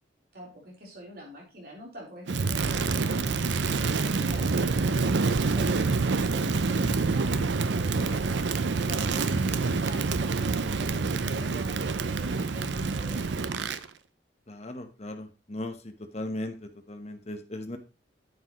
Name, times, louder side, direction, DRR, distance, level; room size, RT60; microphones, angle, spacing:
voice 1, 0.3-3.0 3.4-6.2 6.6-13.4, equal, 55° right, -2 dB, 3.9 m, -45 dB
Crackle, 2.3-13.8, right 4 dB, 70° right, 0.6 m, -27 dB
voice 2, 14.5-15.7 16.1-16.5 16.9-17.8, left 1 dB, 35° left, 6 dB, 1.0 m, -36 dB
9.5 x 7.6 x 3.0 m, 0.30 s
head